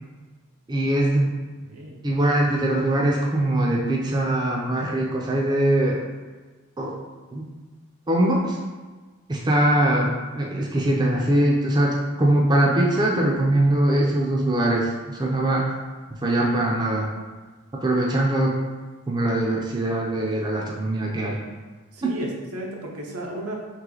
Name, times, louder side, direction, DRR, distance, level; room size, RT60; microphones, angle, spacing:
voice 1, 0.7-1.3 2.0-6.0 6.8-6.9 7.3-7.4 8.1-8.6 9.3-15.7 16.2-17.1 17.8-18.5 19.1-21.4 22.0-22.1, right 1 dB, 20° right, -2 dB, 0.4 m, -22 dB
voice 2, 1.6-2.0 21.9-23.6, right 1 dB, 90° right, -1 dB, 0.8 m, -34 dB
3.2 x 3.1 x 3.8 m, 1.3 s
head